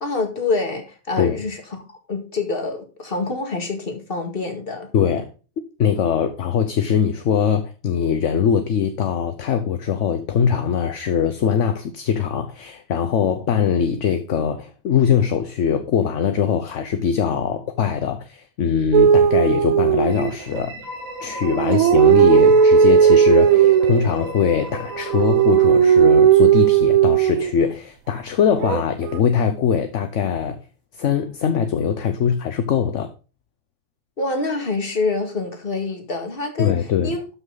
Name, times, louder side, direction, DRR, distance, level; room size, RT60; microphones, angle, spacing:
voice 1, 0.0-4.9 34.2-37.2, left 3 dB, 40° left, 2.1 m, -26 dB
voice 2, 4.9-5.3 5.8-20.8 21.2-30.6 30.9-33.1 36.6-37.2, left 7 dB, 65° left, 1.1 m, -21 dB
sound 1, 18.9-20.6 21.4-24.1 24.9-27.5 28.6-29.2, right 8 dB, 80° right, 1.1 m, -15 dB
sound 2, 20.1-26.8, right 1 dB, 45° right, 4.2 m, -35 dB
12.5 x 6.1 x 3.9 m
omnidirectional pair, 1.4 m